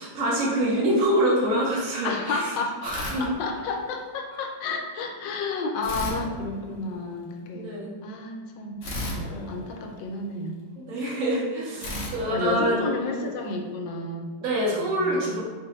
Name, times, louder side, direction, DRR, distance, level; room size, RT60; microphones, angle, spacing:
voice 1, 0.0-2.5 2.8-3.3 7.5-8.0 10.8-12.9 13.2-13.3 14.4-15.4, right 1 dB, 60° right, -5 dB, 1.1 m, -25 dB
voice 2, 2.0-7.7 8.0-8.9 9.3-10.6 11.8-14.3 14.7-15.2, left 3 dB, 90° left, 2 dB, 1.3 m, -31 dB
sound 1, 2.8-4.0 5.8-7.2 8.8-10.5 11.8-13.4, left 1 dB, 65° left, 0.6 m, -36 dB
3.9 x 2.5 x 3.0 m, 1.4 s
omnidirectional pair, 1.9 m